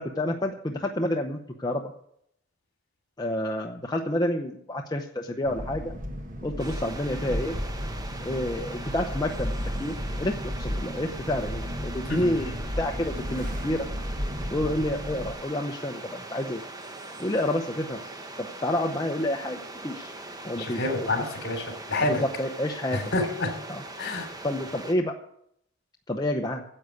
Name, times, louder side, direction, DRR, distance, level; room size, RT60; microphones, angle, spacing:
voice 1, 0.0-1.8 3.2-5.9 6.4-7.6 8.2-9.5 9.8-13.9 14.5-16.6 17.2-18.0 18.4-20.1 20.4-21.1 22.0-23.0 23.7-23.8 24.4-25.1 26.1-26.6, left 1 dB, 20° left, 2 dB, 0.8 m, -29 dB
sound 1, 5.4-15.3, equal, 40° right, 1.4 m, -33 dB
sound 2, 6.6-24.9, right 2 dB, 20° right, 1.0 m, -41 dB
voice 2, 12.0-12.5 20.5-22.2 22.9-23.5 24.0-24.3, left 2 dB, 55° left, 4 dB, 3.2 m, -28 dB
10.0 x 7.8 x 8.4 m, 0.73 s
head